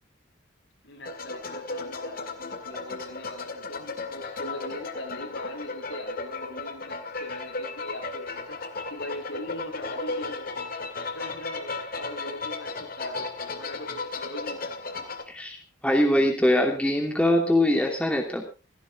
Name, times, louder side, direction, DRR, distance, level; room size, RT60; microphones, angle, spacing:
voice 1, 0.8-8.6 8.9-10.5 11.1-14.8, left 1 dB, 75° left, 2 dB, 7.0 m, -41 dB
sound 1, 1.0-15.2, left 3 dB, 50° left, 2.3 m, -35 dB
voice 2, 15.3-15.6 15.8-18.5, left 1 dB, 5° left, 2 dB, 2.8 m, -22 dB
17.0 x 16.0 x 3.6 m, 0.33 s
head